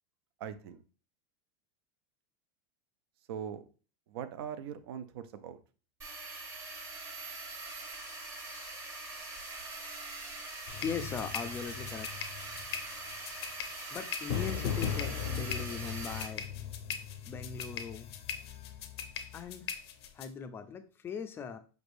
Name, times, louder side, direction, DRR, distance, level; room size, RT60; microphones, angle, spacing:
voice 1, 0.4-0.8 3.3-3.6 4.1-5.6, right 8 dB, 75° right, 11 dB, 0.5 m, -41 dB
sound 1, 6.0-16.3, right 3 dB, 20° right, 0.9 m, -43 dB
sound 2, 10.7-20.3, left 8 dB, 85° left, 0.6 m, -38 dB
voice 2, 10.8-12.1 13.9-16.5 17.2-18.1 19.3-19.7 20.1-21.6, left 6 dB, 15° left, 9 dB, 0.3 m, -39 dB
5.0 x 3.3 x 2.6 m, 0.36 s
supercardioid pair, 150°, 13 cm